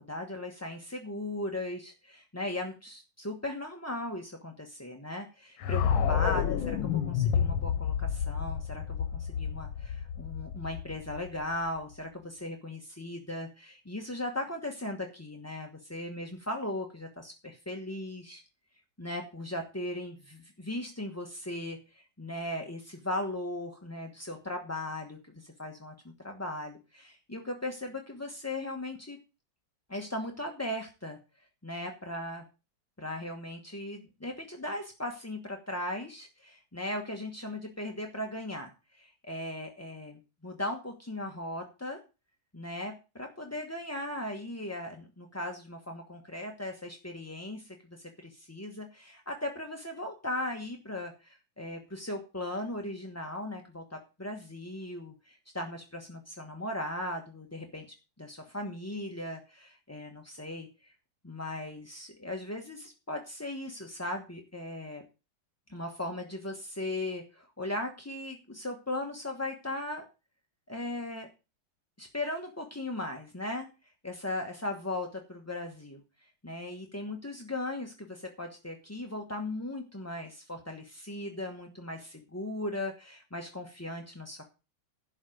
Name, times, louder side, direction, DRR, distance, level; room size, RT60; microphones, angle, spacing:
voice 1, 0.1-18.4 19.0-25.9 26.2-29.2 29.9-31.2 31.6-32.4 33.0-42.0 42.5-57.8 58.2-60.9 61.2-65.0 65.7-70.0 70.7-71.3 72.0-73.7 74.0-76.0 76.4-84.5, left 1 dB, 10° left, 2 dB, 0.8 m, -38 dB
sound 1, 5.6-11.7, left 8 dB, 90° left, 1.8 m, -30 dB
11.5 x 4.9 x 7.8 m, 0.30 s
omnidirectional pair, 2.2 m